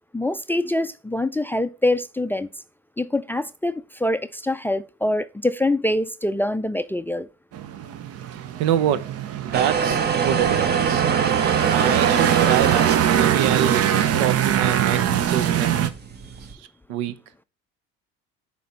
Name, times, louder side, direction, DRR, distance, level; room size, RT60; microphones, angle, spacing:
voice 1, 0.1-2.5 3.0-7.3, left 1 dB, 5° left, 0.4 m, -24 dB
sound 1, 7.5-15.9, right 10 dB, 50° right, 0.9 m, -22 dB
voice 2, 8.6-9.1 9.4-11.0 11.7-13.8 14.2-15.7 16.5-16.6 16.9-17.1, right 10 dB, 75° right, 0.8 m, -25 dB
sound 2, 9.5-16.5, right 6 dB, 35° right, 1.1 m, -26 dB
9.3 x 3.5 x 5.1 m
supercardioid pair, 75°, 30 cm